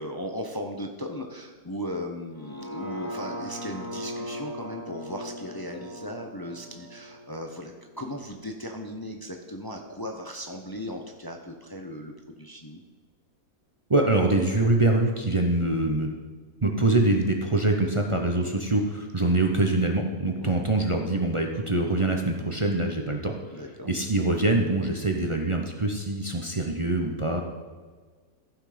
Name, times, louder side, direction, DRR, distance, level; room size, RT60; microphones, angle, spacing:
voice 1, 0.0-12.8 20.3-20.6 23.5-23.9, equal, 25° left, 3 dB, 0.5 m, -37 dB
sound 1, 2.3-8.5 8.9-9.0, equal, 70° left, 3.8 m, -39 dB
voice 2, 13.9-16.1 16.6-23.3 23.8-27.4, right 2 dB, 25° right, 2 dB, 0.7 m, -24 dB
14.5 x 5.9 x 5.0 m, 1.4 s
omnidirectional pair, 1.7 m